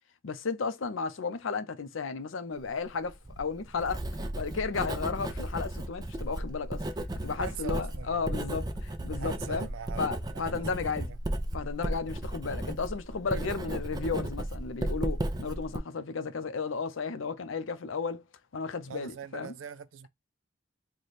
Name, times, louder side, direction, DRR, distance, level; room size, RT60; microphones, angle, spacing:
voice 1, 0.2-4.0 4.4-6.8 7.2-9.7 10.0-11.2 11.5-18.2 18.5-19.5, left 4 dB, 85° left, 0.6 m, -34 dB
Writing, 3.0-15.8, right 1 dB, 20° right, 0.4 m, -35 dB
voice 2, 7.4-8.4 9.1-11.2 13.3-13.8 18.9-20.1, right 7 dB, 90° right, 0.4 m, -43 dB
4.1 x 2.2 x 3.1 m
head